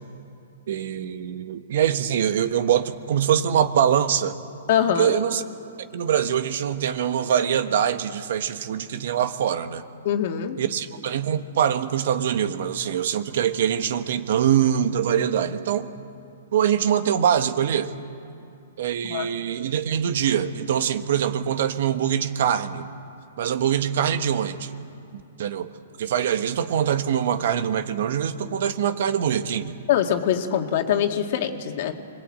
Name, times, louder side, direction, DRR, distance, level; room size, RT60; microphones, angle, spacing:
voice 1, 0.7-4.4 5.0-5.4 5.9-9.8 10.6-15.9 16.5-17.9 18.8-22.9 23.4-24.7 25.1-25.7 26.0-29.7, right 9 dB, 60° right, 10 dB, 1.3 m, -23 dB
voice 2, 4.7-5.2 10.0-10.6 19.1-19.3 29.9-31.9, left 9 dB, 50° left, 5 dB, 2.1 m, -23 dB
26.0 x 21.0 x 8.7 m, 2.6 s
hypercardioid pair, 140°, 0 cm